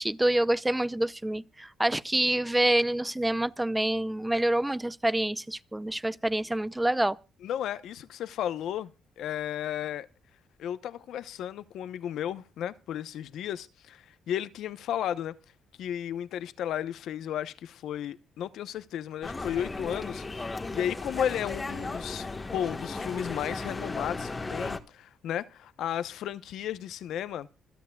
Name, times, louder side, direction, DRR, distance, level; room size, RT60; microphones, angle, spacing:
voice 1, 0.0-7.2, right 1 dB, 10° right, 0.6 m, -27 dB
voice 2, 7.4-8.9 9.2-10.1 10.6-15.3 15.8-27.5, left 10 dB, 80° left, 0.9 m, -34 dB
sound 1, 19.2-24.8, left 3 dB, 25° left, 1.5 m, -35 dB
26.0 x 9.4 x 2.4 m
cardioid pair, 90°, 0 cm